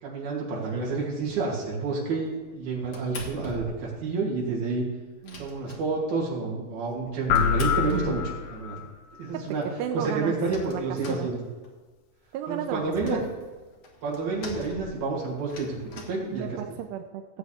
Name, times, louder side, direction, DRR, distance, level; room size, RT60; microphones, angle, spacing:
voice 1, 0.0-4.8 5.4-8.8 9.2-9.6 9.9-11.4 12.5-13.2 14.0-16.5, right 4 dB, 65° right, -4 dB, 4.5 m, -29 dB
sound 1, 1.3-1.7 2.2-4.0 4.2-4.3 4.6-4.7 5.0-6.3 6.8-8.7 9.2-9.3 9.5-9.6 9.8-11.9 12.3-16.8, left 3 dB, 65° left, 1.3 m, -44 dB
sound 2, 7.3-8.9, left 7 dB, 80° left, 2.1 m, -25 dB
voice 2, 9.3-10.3 10.6-11.3 12.3-13.2 16.3-17.4, right 10 dB, 90° right, 6 dB, 2.7 m, -34 dB
18.0 x 8.1 x 3.4 m, 1.3 s
omnidirectional pair, 4.8 m